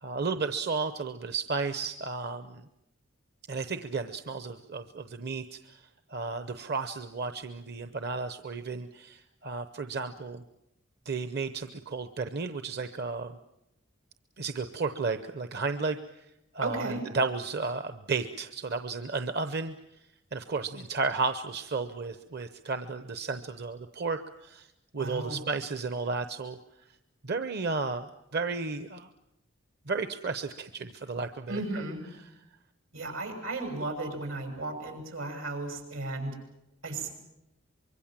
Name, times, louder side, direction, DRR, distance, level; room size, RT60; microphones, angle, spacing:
voice 1, 0.0-2.7 3.5-10.4 11.0-13.4 14.4-16.3 16.5-19.7 20.3-26.6 27.2-29.1 29.9-31.8, right 4 dB, 55° right, 10 dB, 0.8 m, -33 dB
voice 2, 16.6-17.0 25.0-25.4 31.5-32.0 32.9-36.3 36.8-37.1, right 2 dB, 85° right, 5 dB, 6.7 m, -35 dB
24.5 x 23.0 x 7.5 m, 0.84 s
head